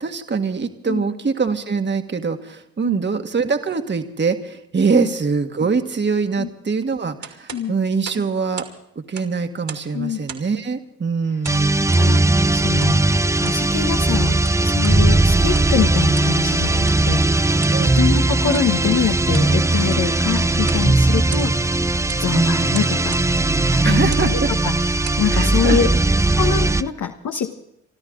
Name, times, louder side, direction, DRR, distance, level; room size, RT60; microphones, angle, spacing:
voice 1, 0.0-8.7 8.9-11.7 17.7-18.0 23.8-24.5 25.3-25.8, right 5 dB, 35° right, 5 dB, 1.6 m, -23 dB
sound 1, 7.2-8.8 9.0-9.9 10.3-10.6 11.4-12.1 12.8-13.0 13.3-13.7 14.2-15.0 15.4-15.8 16.1-16.4 16.9-17.0 17.6-17.8 18.5-18.7 19.1-19.5 19.8-20.1 20.6-20.9 21.2-21.7 22.1-22.3 22.7-23.3 24.0-24.3 24.8-25.3, right 7 dB, 60° right, 2.5 m, -37 dB
sound 2, 11.4-26.9, right 2 dB, 10° right, 0.6 m, -18 dB
voice 2, 11.9-13.0 13.4-21.6 22.2-23.2 23.6-25.9 26.4-27.5, left 8 dB, 65° left, 4 dB, 1.3 m, -25 dB
25.5 x 13.0 x 3.9 m, 0.82 s
supercardioid pair, 55°, 32 cm